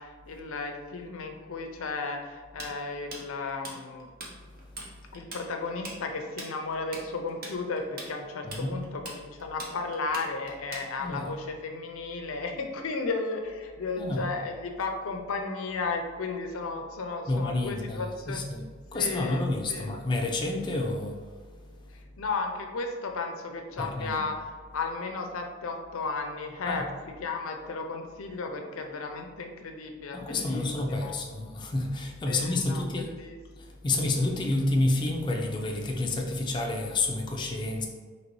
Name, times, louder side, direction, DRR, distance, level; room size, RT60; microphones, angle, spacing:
voice 1, 0.0-4.1 5.1-18.4 18.9-19.9 22.2-24.5 24.7-26.9 27.2-30.7 31.0-31.1 32.2-32.8 33.2-33.4, left 3 dB, 75° left, 4 dB, 0.5 m, -34 dB
Tools, 2.6-4.3 4.6-4.9 5.1-11.2, right 2 dB, 45° right, 0.7 m, -41 dB
voice 2, 4.4-5.2 8.4-8.7 11.0-11.3 14.0-14.3 17.3-22.0 23.8-24.2 26.6-26.8 30.1-33.1 33.5-37.9, left 2 dB, 20° left, 0 dB, 0.4 m, -30 dB
4.0 x 2.9 x 3.0 m, 1.5 s
head